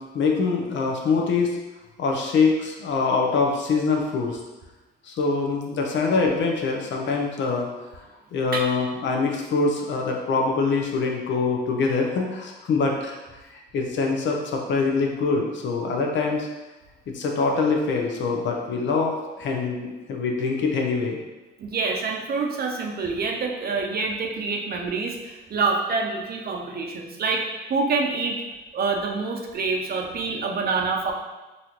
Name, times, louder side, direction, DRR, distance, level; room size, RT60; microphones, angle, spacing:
voice 1, 0.0-1.6 2.0-4.4 5.0-7.7 7.9-8.0 8.3-13.2 13.5-16.5 17.1-21.2, left 4 dB, 65° left, 1 dB, 0.7 m, -24 dB
voice 2, 21.6-28.4 28.7-31.1, right 4 dB, 50° right, 2 dB, 0.6 m, -26 dB
4.1 x 2.5 x 2.9 m, 1.1 s
cardioid pair, 90°, 20 cm